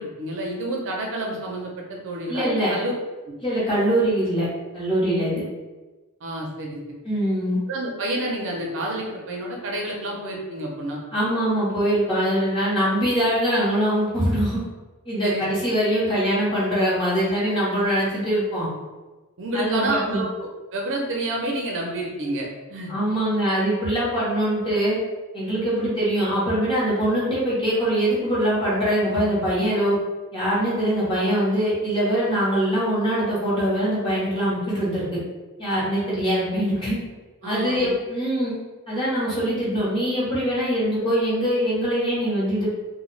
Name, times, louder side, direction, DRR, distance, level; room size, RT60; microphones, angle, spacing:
voice 1, 0.0-2.9 3.2-3.4 6.2-7.0 7.7-11.0 15.2-15.4 19.4-22.9 37.4-37.9, right 1 dB, 60° right, -1 dB, 0.6 m, -29 dB
voice 2, 2.3-2.7 3.4-4.5 4.7-5.4 7.0-7.6 11.1-14.6 15.1-18.7 19.5-20.2 22.9-25.0 25.3-29.9 30.3-35.2 35.6-37.0 37.4-38.5 38.9-42.7, equal, 25° left, -9 dB, 0.9 m, -23 dB
2.3 x 2.2 x 3.1 m, 1.2 s
head